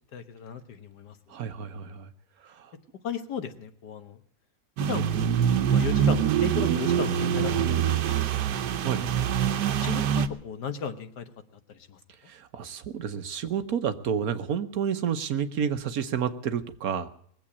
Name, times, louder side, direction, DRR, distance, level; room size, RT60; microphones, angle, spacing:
voice 1, 0.1-1.2 3.0-4.2 4.8-5.3 5.7-9.0 9.7-11.3 11.7-12.0, left 7 dB, 85° left, 9 dB, 1.8 m, -36 dB
voice 2, 1.3-2.1 2.4-2.7 8.8-9.1 12.3-17.1, right 7 dB, 65° right, 10 dB, 1.3 m, -30 dB
sound 1, 4.8-10.3, right 8 dB, 85° right, 1.4 m, -24 dB
20.5 x 7.9 x 8.5 m, 0.63 s
omnidirectional pair, 1.7 m